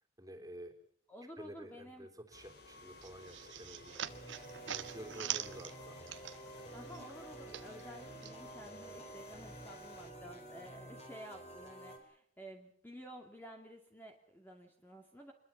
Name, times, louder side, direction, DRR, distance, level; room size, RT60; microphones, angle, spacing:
voice 1, 0.2-0.7 1.4-4.1 4.7-6.0, right 1 dB, 20° right, 5 dB, 3.5 m, -50 dB
voice 2, 1.1-2.1 6.7-15.3, equal, 10° left, 2 dB, 2.3 m, -52 dB
sound 1, 2.3-10.1, left 2 dB, 55° left, 3.7 m, -57 dB
sound 2, 3.0-6.6 6.9-8.3, right 10 dB, 70° right, 1.3 m, -43 dB
sound 3, 4.1-12.0, right 1 dB, 35° left, 5.2 m, -50 dB
25.5 x 22.0 x 7.3 m, 0.64 s
head